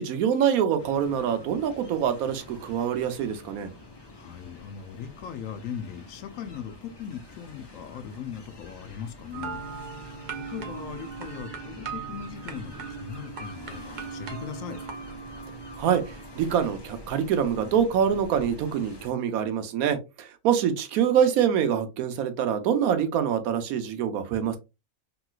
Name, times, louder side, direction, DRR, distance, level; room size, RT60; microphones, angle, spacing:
voice 1, 0.0-3.7 15.8-24.6, right 8 dB, 85° right, 1.1 m, -25 dB
sound 1, 0.8-19.1, left 2 dB, 35° left, 0.4 m, -48 dB
voice 2, 4.1-9.6 10.5-14.8, left 8 dB, 70° left, 0.9 m, -39 dB
sound 2, 9.3-18.7, right 5 dB, 50° right, 0.5 m, -40 dB
3.0 x 3.0 x 2.3 m
omnidirectional pair, 1.5 m